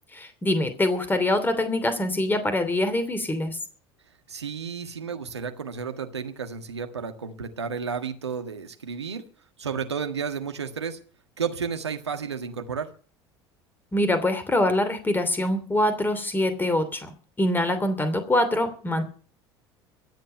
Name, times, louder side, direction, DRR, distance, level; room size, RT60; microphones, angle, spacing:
voice 1, 0.1-3.6 13.9-19.0, left 1 dB, 15° left, 10 dB, 2.8 m, -24 dB
voice 2, 4.3-9.2 9.6-11.0 11.4-12.9, right 6 dB, 85° right, 6 dB, 1.6 m, -32 dB
24.5 x 8.2 x 5.6 m, 0.43 s
figure-of-eight pair, 70°, 14 cm